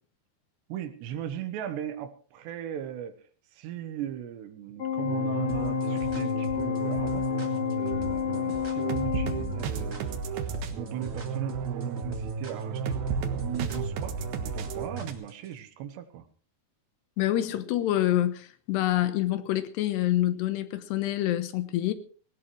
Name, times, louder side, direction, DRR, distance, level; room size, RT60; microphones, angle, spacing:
voice 1, 0.7-3.2 3.5-7.3 7.8-10.2 10.7-13.0 13.3-16.2, right 10 dB, 90° right, 3.5 m, -38 dB
Organ, 4.8-9.9, left 9 dB, 35° left, 2.9 m, -30 dB
sound 1, 5.0-15.1, right 5 dB, 70° right, 3.2 m, -33 dB
sound 2, 5.5-15.5, right 1 dB, 25° right, 1.6 m, -42 dB
voice 2, 17.2-21.9, left 13 dB, 80° left, 3.2 m, -26 dB
19.0 x 18.5 x 3.2 m
omnidirectional pair, 4.8 m